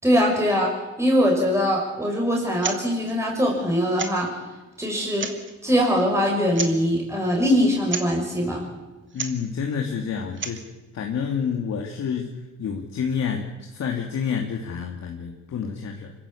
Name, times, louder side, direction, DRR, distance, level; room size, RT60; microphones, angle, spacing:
voice 1, 0.0-0.7 1.0-4.3 4.8-5.3 5.6-8.6, equal, 10° right, -1 dB, 5.5 m, -22 dB
sound 1, 2.5-2.8 3.1-3.2 4.0-4.3 5.0-5.5 6.5-6.9 7.9-8.1 9.1-9.4 10.2-10.7, right 5 dB, 40° right, 2.6 m, -31 dB
voice 2, 9.1-10.6 10.9-12.3 12.6-16.1, left 6 dB, 60° left, 2 dB, 2.4 m, -28 dB
25.5 x 14.5 x 8.5 m, 1.1 s
cardioid pair, 90°, 30 cm